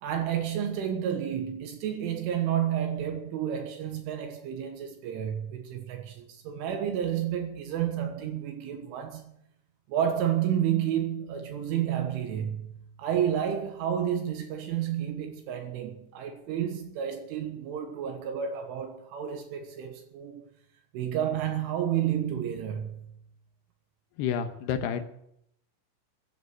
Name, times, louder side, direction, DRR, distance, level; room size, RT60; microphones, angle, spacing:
voice 1, 0.0-9.2 9.9-20.4 20.9-23.1, right 9 dB, 75° right, 3.6 m, -30 dB
voice 2, 24.2-25.0, left 8 dB, 75° left, 2.5 m, -29 dB
15.0 x 11.0 x 8.1 m
omnidirectional pair, 6.0 m